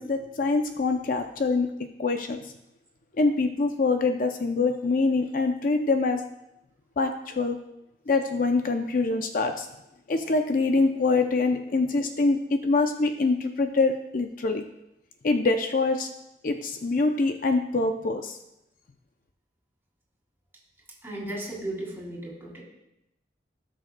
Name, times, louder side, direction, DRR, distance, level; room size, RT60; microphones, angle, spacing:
voice 1, 0.0-1.7 2.0-2.4 3.2-6.2 7.0-7.6 8.1-9.7 10.1-14.6 15.2-16.1 16.4-18.4, left 3 dB, 50° left, 6 dB, 0.5 m, -24 dB
voice 2, 21.0-22.6, right 1 dB, 15° right, -4 dB, 2.8 m, -35 dB
17.0 x 6.3 x 2.2 m, 0.87 s
head